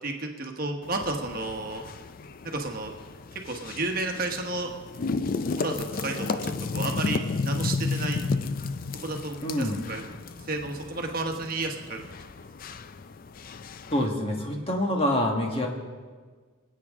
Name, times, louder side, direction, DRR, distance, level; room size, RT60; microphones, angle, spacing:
voice 1, 0.0-1.8 2.4-2.9 3.3-4.7 5.6-8.2 8.9-10.0 10.4-12.0, right 2 dB, 45° right, 3 dB, 1.2 m, -32 dB
sound 1, 0.8-14.1, left 4 dB, 45° left, 0.4 m, -33 dB
voice 2, 9.4-9.8 13.9-15.7, left 1 dB, 30° left, 1 dB, 1.5 m, -26 dB
24.5 x 8.6 x 3.7 m, 1.5 s
head